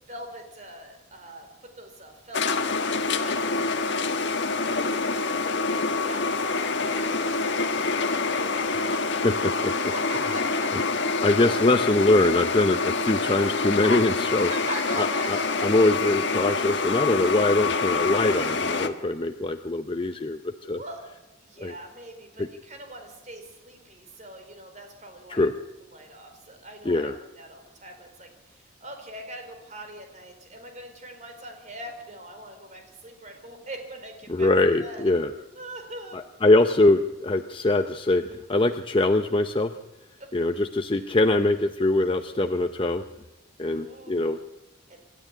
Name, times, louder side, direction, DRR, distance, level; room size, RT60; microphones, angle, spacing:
voice 1, 0.1-2.5 3.1-9.5 9.9-10.7 11.5-11.6 14.4-15.6 20.8-21.0 21.4-25.5 25.8-34.5 34.8-35.0 35.5-36.2 40.2-40.3 43.7-44.4 44.9-45.0, right 1 dB, 35° right, 5 dB, 4.5 m, -42 dB
sound 1, 2.3-18.9, left 4 dB, 60° left, 1.5 m, -26 dB
voice 2, 9.2-9.7 11.2-14.5 15.0-20.8 21.6-21.7 22.4-22.5 25.3-25.5 26.8-27.1 34.3-35.3 36.1-39.7 40.3-43.0 43.6-44.4, left 2 dB, 25° left, 7 dB, 0.7 m, -23 dB
27.0 x 12.5 x 10.0 m, 1.0 s
head